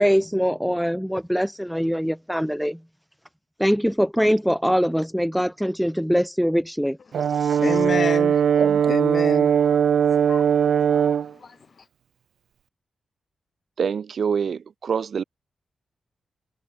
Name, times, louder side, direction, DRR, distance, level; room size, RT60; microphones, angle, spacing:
voice 1, 0.0-2.8 3.6-7.0 7.4-7.5, equal, ahead, 1.6 m, -22 dB
Brass instrument, 7.1-11.3, right 8 dB, 85° right, 0.5 m, -19 dB
voice 2, 7.4-8.3 8.9-9.8 10.2-11.6, left 5 dB, 50° left, 5.8 m, -30 dB
voice 3, 13.8-15.2, right 6 dB, 65° right, 1.7 m, -25 dB
cardioid pair, 90°, 0 cm